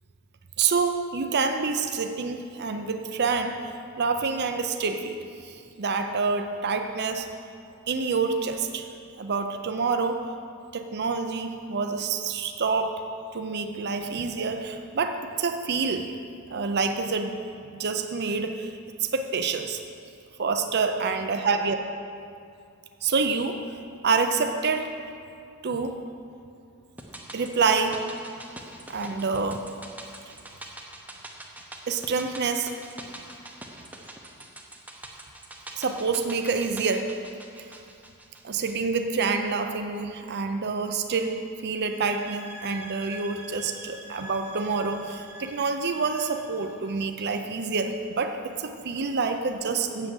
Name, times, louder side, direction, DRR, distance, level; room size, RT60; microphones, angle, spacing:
voice 1, 0.6-5.2 5.4-7.3 7.9-8.9 9.2-10.2 10.7-12.9 13.3-16.1 16.5-17.4 17.7-18.7 19.0-19.8 20.4-21.8 23.0-23.6 24.0-24.9 25.6-25.9 27.3-28.0 28.9-29.6 30.3-30.4 31.9-32.7 35.7-37.1 37.6-37.7 38.4-50.1, right 4 dB, 50° right, 6 dB, 0.5 m, -27 dB
sound 1, 27.0-39.3 39.6-39.7, right 1 dB, 5° right, 0.7 m, -44 dB
sound 2, 41.8-46.8, right 1 dB, 80° right, 1.3 m, -45 dB
7.5 x 7.2 x 7.8 m, 2.4 s
head